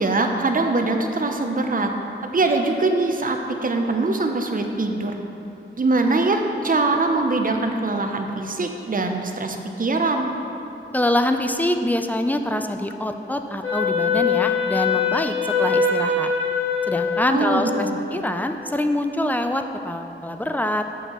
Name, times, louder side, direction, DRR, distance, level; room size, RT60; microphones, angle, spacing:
voice 1, 0.0-1.9 2.3-5.1 5.8-10.3 17.3-18.0, right 3 dB, 45° right, 4 dB, 0.5 m, -22 dB
voice 2, 10.9-16.3 16.9-20.8, left 1 dB, 10° left, 6 dB, 0.3 m, -25 dB
Wind instrument woodwind instrument, 13.6-17.9, left 5 dB, 80° left, 1.5 m, -23 dB
7.0 x 6.3 x 3.0 m, 2.8 s
wide cardioid pair, 80°, 20 cm